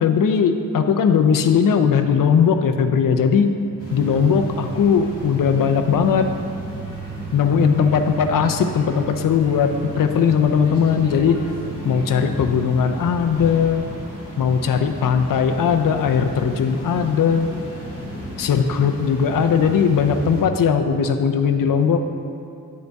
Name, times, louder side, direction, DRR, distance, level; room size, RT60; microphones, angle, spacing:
voice 1, 0.0-3.6 3.9-6.3 7.3-9.7 10.0-11.4 11.8-13.9 14.4-17.5 18.4-22.0, left 6 dB, 70° left, 6 dB, 0.5 m, -18 dB
sound 1, 3.8-20.4, right 1 dB, 45° left, 1.9 m, -33 dB
9.4 x 6.6 x 3.4 m, 2.7 s
wide cardioid pair, 160°, 34 cm